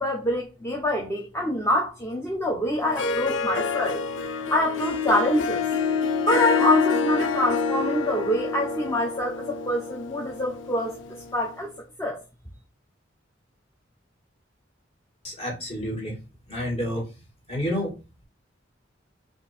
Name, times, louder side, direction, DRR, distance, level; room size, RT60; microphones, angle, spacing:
voice 1, 0.0-4.1 4.5-5.6 6.2-11.0 11.3-12.2, left 1 dB, 15° left, 0.7 m, -25 dB
Harp, 2.8-11.4, left 5 dB, 80° left, 0.5 m, -27 dB
voice 2, 15.2-16.2 16.5-17.1 17.5-17.9, equal, 35° left, 1.9 m, -29 dB
4.4 x 2.6 x 4.2 m
head